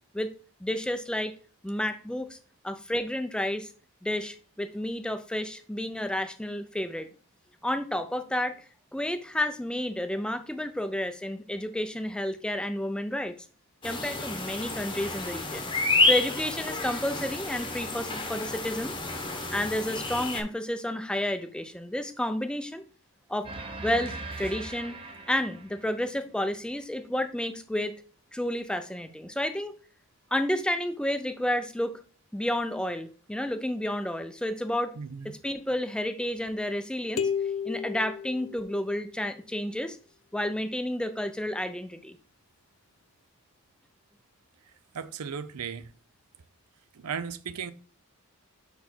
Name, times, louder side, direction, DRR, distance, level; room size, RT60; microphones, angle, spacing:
voice 1, 0.6-1.3 1.6-2.4 2.6-3.7 4.0-7.1 7.6-8.6 8.9-13.3 13.8-15.7 16.0-18.9 19.5-22.8 23.3-23.5 23.8-25.0 25.3-27.9 28.3-29.8 30.3-32.0 32.3-34.9 35.2-37.3 37.6-40.0 40.3-42.2, left 1 dB, 5° left, 0.4 m, -31 dB
sound 1, 13.8-20.4, left 3 dB, 20° left, 0.9 m, -29 dB
sound 2, 23.4-26.4, right 2 dB, 25° right, 0.7 m, -40 dB
voice 2, 35.0-35.4 44.9-45.9 47.0-47.7, right 6 dB, 85° right, 0.5 m, -36 dB
sound 3, 37.2-39.1, left 7 dB, 70° left, 0.5 m, -32 dB
5.3 x 4.2 x 4.4 m
head